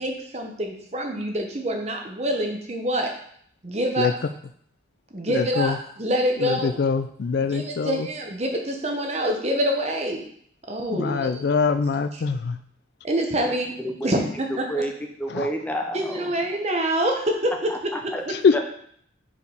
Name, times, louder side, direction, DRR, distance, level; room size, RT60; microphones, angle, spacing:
voice 1, 0.0-3.1 3.6-4.1 5.1-6.8 7.5-10.2 10.7-11.4 13.0-13.7 14.0-14.7 15.9-17.7, equal, 35° right, 2 dB, 0.9 m, -26 dB
voice 2, 5.3-5.8 6.4-8.1 10.9-12.6 15.3-15.5 18.3-18.5, left 5 dB, 55° left, 10 dB, 0.3 m, -23 dB
voice 3, 13.8-14.2 14.7-14.9 15.2-16.3 17.7-18.2 18.5-18.6, right 1 dB, 10° left, 3 dB, 0.6 m, -29 dB
4.9 x 4.7 x 5.3 m, 0.64 s
head